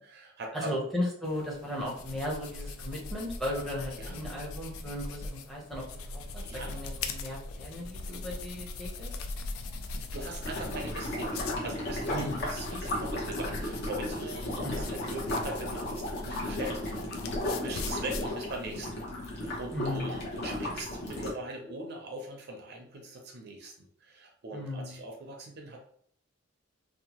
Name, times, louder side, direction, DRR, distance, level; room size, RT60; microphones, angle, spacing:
voice 1, 0.0-0.8 4.0-4.2 6.4-6.8 9.4-17.1 17.6-19.0 19.4-25.8, right 2 dB, 50° right, 2 dB, 0.5 m, -41 dB
voice 2, 0.5-9.1 12.1-12.4 14.6-14.7 19.7-20.2 24.5-25.0, left 1 dB, ahead, -4 dB, 0.6 m, -36 dB
sound 1, 1.2-18.7, left 3 dB, 80° left, 0.3 m, -40 dB
sound 2, 10.4-21.3, left 1 dB, 55° left, 0.9 m, -35 dB
2.7 x 2.1 x 2.9 m, 0.63 s
head